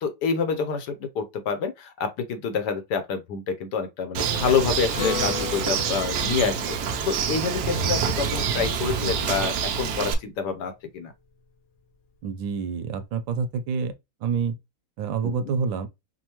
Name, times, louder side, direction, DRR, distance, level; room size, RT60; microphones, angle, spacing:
voice 1, 0.0-11.1 15.2-15.5, left 6 dB, 70° left, 1.2 m, -27 dB
Bird, 4.1-10.1, right 6 dB, 70° right, 1.1 m, -27 dB
Acoustic guitar, 4.9-9.6, left 5 dB, 90° left, 1.8 m, -36 dB
voice 2, 12.2-13.9 14.2-14.5 15.0-15.9, right 6 dB, 90° right, 1.3 m, -27 dB
5.3 x 2.1 x 2.9 m
omnidirectional pair, 2.0 m